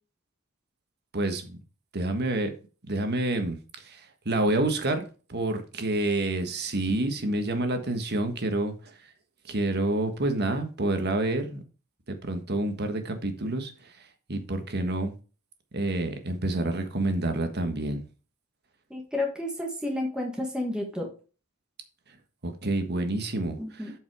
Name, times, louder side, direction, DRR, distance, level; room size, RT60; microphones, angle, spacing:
voice 1, 1.1-1.6 1.9-2.5 2.9-3.6 3.8-8.7 9.5-11.6 12.3-13.9 14.3-15.1 15.7-18.0 22.4-23.9, right 2 dB, 50° right, 1.5 m, -28 dB
voice 2, 18.9-21.1 23.6-23.9, left 1 dB, 5° right, 1.6 m, -31 dB
7.9 x 5.5 x 4.8 m
head